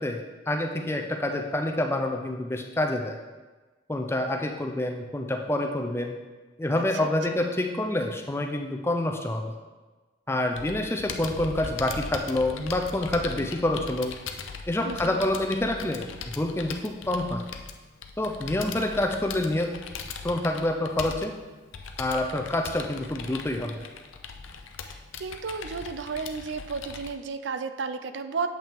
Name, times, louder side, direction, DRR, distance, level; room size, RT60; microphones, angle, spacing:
voice 1, 0.0-3.2 3.9-6.2 6.6-9.5 10.3-14.1 14.7-17.4 18.2-19.7 20.2-21.3 22.0-23.8, left 1 dB, 10° left, 3 dB, 0.5 m, -27 dB
voice 2, 6.9-7.4 14.8-15.2 24.9-28.5, right 5 dB, 65° right, 10 dB, 0.4 m, -33 dB
Computer keyboard, 10.6-27.1, left 5 dB, 80° left, 0.6 m, -39 dB
7.4 x 5.5 x 3.5 m, 1.3 s
head